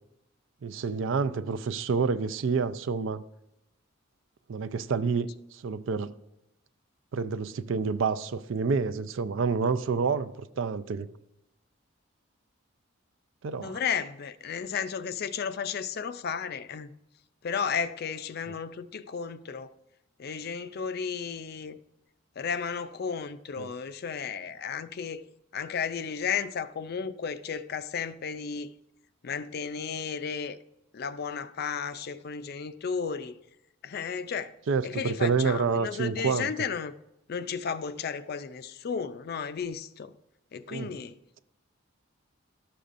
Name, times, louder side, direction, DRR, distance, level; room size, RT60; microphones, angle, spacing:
voice 1, 0.6-3.2 4.5-6.1 7.1-11.1 13.4-13.8 18.5-18.6 23.6-23.7 34.7-36.5 40.7-41.0, right 5 dB, 70° right, 0.4 m, -28 dB
voice 2, 13.6-16.9 17.4-19.7 20.2-21.8 22.4-25.2 25.5-28.7 29.2-30.6 30.9-33.4 33.8-34.5 34.8-36.9 37.3-40.1 40.5-41.2, left 6 dB, 50° left, 0.4 m, -33 dB
12.5 x 6.7 x 2.5 m
head